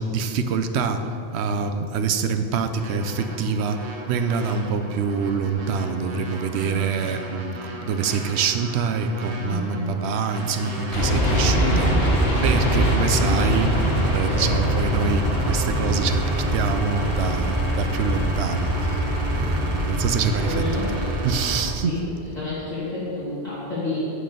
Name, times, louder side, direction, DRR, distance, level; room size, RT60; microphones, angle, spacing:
voice 1, 0.0-12.0 12.4-19.0 19.3-20.6 20.9-21.0 21.2-22.0, right 5 dB, 80° right, 9 dB, 0.9 m, -25 dB
sound 1, 2.7-21.6, right 1 dB, 60° right, 1.2 m, -34 dB
voice 2, 6.6-7.1 9.4-9.9 11.5-12.1 12.7-13.4 14.2-14.4 17.1-17.4 20.3-21.0 21.4-21.5 21.8-22.0 22.3-24.1, left 1 dB, 40° left, -12 dB, 2.3 m, -32 dB
sound 2, 10.9-21.7, equal, 65° left, 1.6 m, -23 dB
9.7 x 4.3 x 6.6 m, 2.8 s
omnidirectional pair, 1.1 m